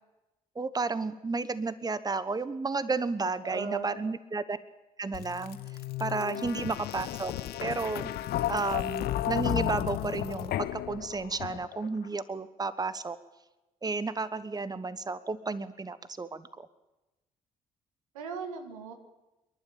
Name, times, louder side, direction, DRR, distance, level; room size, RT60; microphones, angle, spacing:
voice 1, 0.5-4.6 5.0-5.6 6.0-7.3 7.6-8.1 8.5-13.2 13.8-16.7, right 3 dB, 20° right, 14 dB, 1.1 m, -32 dB
voice 2, 3.4-4.0 6.1-6.6 18.1-18.9, right 5 dB, 90° right, 6 dB, 1.7 m, -38 dB
sound 1, 5.1-11.9, left 12 dB, 65° left, 0.8 m, -33 dB
27.5 x 11.5 x 8.5 m, 1.0 s
hypercardioid pair, 45°, 17 cm